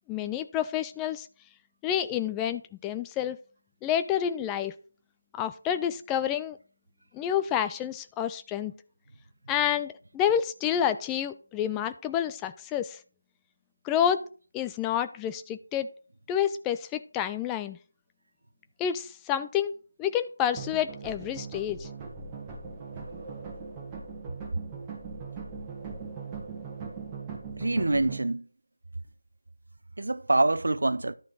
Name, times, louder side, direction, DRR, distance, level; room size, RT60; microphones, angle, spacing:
voice 1, 0.1-1.3 1.8-3.4 3.8-4.7 5.4-6.6 7.1-8.7 9.5-13.0 13.8-14.3 14.5-15.9 16.3-17.8 18.8-19.7 20.0-21.9, left 9 dB, 10° left, 0.3 m, -29 dB
Suspense Loop, 20.6-28.2, right 5 dB, 15° right, 1.6 m, -40 dB
voice 2, 27.6-28.4 30.0-31.1, right 2 dB, 65° right, 0.6 m, -25 dB
11.5 x 5.3 x 4.0 m
figure-of-eight pair, 160°, 0 cm